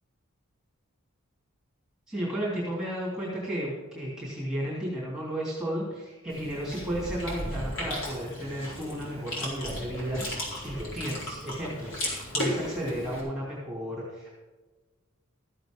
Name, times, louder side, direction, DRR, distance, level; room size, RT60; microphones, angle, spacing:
voice 1, 2.1-14.3, equal, 5° right, -6 dB, 3.0 m, -33 dB
Chewing mastication, 6.3-13.2, left 1 dB, 65° left, 4.4 m, -35 dB
14.0 x 7.8 x 5.3 m, 1.2 s
head